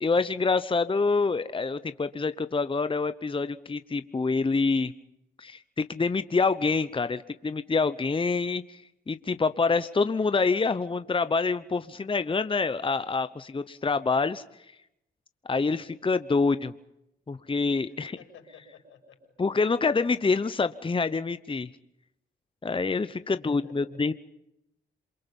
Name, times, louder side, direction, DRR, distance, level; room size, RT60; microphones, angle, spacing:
voice 1, 0.0-4.9 5.4-14.8 15.5-16.7 17.3-18.1 19.4-21.7 22.6-24.1, left 4 dB, 25° left, 12 dB, 0.9 m, -26 dB
voice 2, 17.9-19.3 23.3-24.0, left 5 dB, 90° left, 4 dB, 6.7 m, -53 dB
27.5 x 23.0 x 5.5 m, 0.82 s
supercardioid pair, 60°, 20 cm